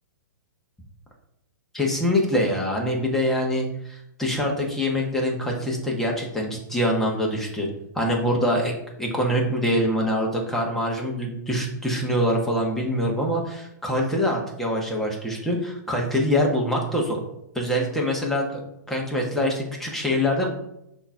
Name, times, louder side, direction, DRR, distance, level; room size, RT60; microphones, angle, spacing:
voice 1, 1.7-7.7 7.9-17.2 17.5-18.6 18.9-20.5, equal, 5° left, -2 dB, 1.6 m, -24 dB
6.4 x 3.1 x 5.7 m, 0.82 s
figure-of-eight pair, 115°, 10 cm